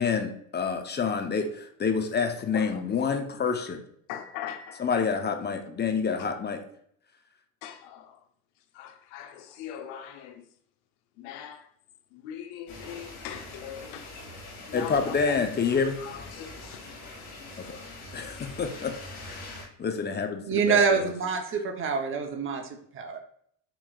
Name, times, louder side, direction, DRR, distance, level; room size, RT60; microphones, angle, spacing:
voice 1, 0.0-3.8 4.8-6.6 14.7-16.0 17.6-17.8 18.1-21.1, left 5 dB, 25° left, 0.6 m, -28 dB
voice 2, 2.5-3.2 3.4-3.7 4.1-5.1 5.9-6.3 7.6-8.2 8.7-10.5 11.2-11.7 12.1-14.2 14.7-15.4 15.7-16.8, left 9 dB, 70° left, 0.8 m, -41 dB
sound 1, 12.7-19.6, left 2 dB, 85° left, 1.8 m, -43 dB
voice 3, 20.5-23.2, right 5 dB, 30° right, 0.8 m, -26 dB
7.3 x 3.1 x 2.3 m
hypercardioid pair, 80°, 43 cm